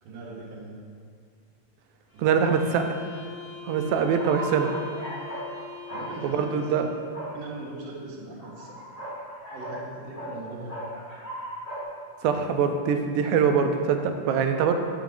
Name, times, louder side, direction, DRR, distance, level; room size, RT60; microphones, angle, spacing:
voice 1, 0.0-0.7 2.1-2.7 5.9-7.0 7.3-8.8 9.5-10.8, right 2 dB, 65° right, -4 dB, 2.3 m, -40 dB
sound 1, 2.1-7.1, left 4 dB, 55° left, 0.8 m, -43 dB
voice 2, 2.2-2.9 3.6-4.7 6.2-6.8 12.2-14.7, right 6 dB, 85° right, 6 dB, 2.0 m, -23 dB
sound 2, 4.0-5.5 5.9-6.1 7.1-7.3 8.4-9.8 10.1-10.3 10.7-11.8, right 1 dB, 80° left, 0.3 m, -37 dB
10.5 x 4.6 x 3.7 m, 2.1 s
omnidirectional pair, 3.4 m